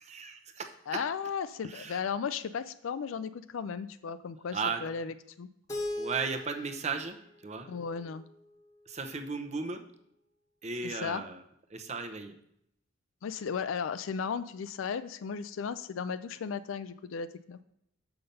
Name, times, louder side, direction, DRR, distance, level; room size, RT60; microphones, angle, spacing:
voice 1, 0.0-0.7 1.6-2.0 4.5-4.8 6.0-7.2 7.4-7.7 8.9-9.8 10.6-11.4 11.7-12.3, right 4 dB, 35° right, 6 dB, 0.8 m, -35 dB
voice 2, 0.9-5.5 7.7-8.2 10.8-11.2 13.2-17.6, left 6 dB, 90° left, 12 dB, 0.4 m, -35 dB
Keyboard (musical), 5.7-8.6, left 2 dB, 20° left, 1.1 m, -40 dB
6.9 x 5.8 x 5.3 m, 0.74 s
head